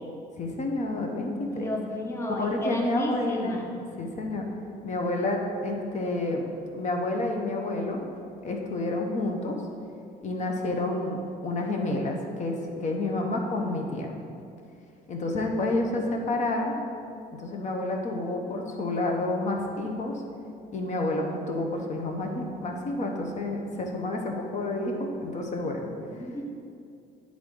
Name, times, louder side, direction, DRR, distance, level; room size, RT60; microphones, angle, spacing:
voice 1, 0.4-1.7 2.4-3.7 4.0-4.5 4.8-6.4 6.7-8.2 8.4-9.6 10.2-14.1 15.1-16.8 17.4-20.2 20.7-26.2, left 2 dB, 45° left, 2 dB, 0.8 m, -29 dB
voice 2, 1.4-3.7 26.1-26.5, left 1 dB, 15° left, 1 dB, 0.7 m, -33 dB
10.5 x 3.7 x 3.7 m, 2.4 s
cardioid pair, 110°, 17 cm